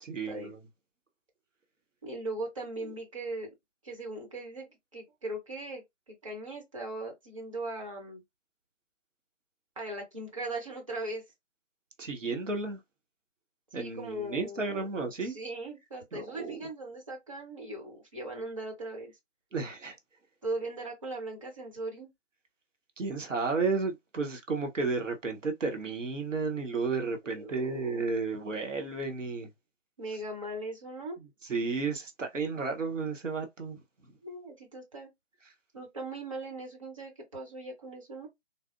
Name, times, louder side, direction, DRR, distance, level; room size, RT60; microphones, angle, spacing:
voice 1, 0.0-0.6 2.8-2.9 12.0-12.8 13.7-15.4 16.1-16.6 19.5-20.0 23.0-29.5 31.4-33.8, right 4 dB, 90° right, 1.0 m, -32 dB
voice 2, 2.0-3.5 3.8-8.2 9.8-11.2 13.7-14.9 15.2-19.1 20.4-22.1 27.3-28.0 30.0-31.2 34.2-35.1 35.7-38.3, right 2 dB, 25° right, 0.9 m, -39 dB
4.0 x 2.0 x 2.4 m
figure-of-eight pair, 160°, 37 cm